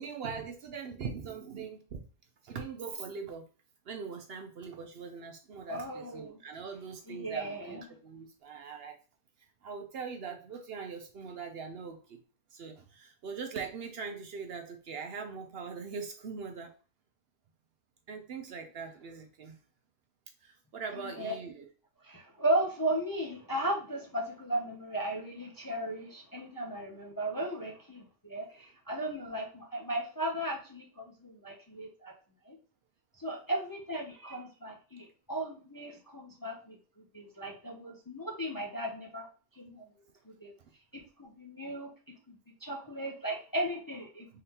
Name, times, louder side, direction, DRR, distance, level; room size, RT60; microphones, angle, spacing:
voice 1, 0.0-2.0 2.4-3.4 3.9-9.0 9.6-12.2 12.5-16.7 18.1-19.6 20.4-21.7, right 5 dB, 60° right, 5 dB, 0.8 m, -41 dB
voice 2, 5.7-6.4 7.1-7.9 21.0-21.3 22.0-32.1 32.5-32.6 33.2-36.8 37.1-39.3 39.6-39.8 40.3-40.5 41.2-44.3, right 1 dB, 25° left, -1 dB, 0.5 m, -36 dB
3.8 x 3.7 x 2.8 m, 0.37 s
omnidirectional pair, 1.3 m